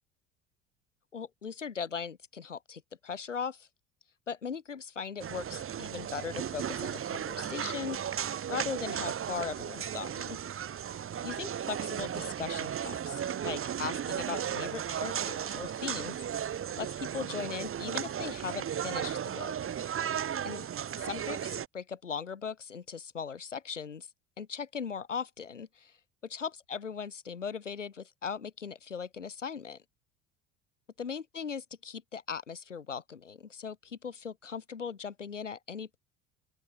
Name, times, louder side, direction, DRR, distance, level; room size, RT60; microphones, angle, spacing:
voice 1, 1.1-3.7 4.3-8.2 8.5-10.4 11.2-16.5 16.8-19.5 20.4-20.7 21.0-24.1 24.4-25.9 26.2-29.8 31.0-36.0, left 6 dB, 90° left, 3.8 m, -39 dB
sound 1, 5.2-21.7, right 9 dB, 35° right, 2.7 m, -35 dB
open air
figure-of-eight pair, 65°, 36 cm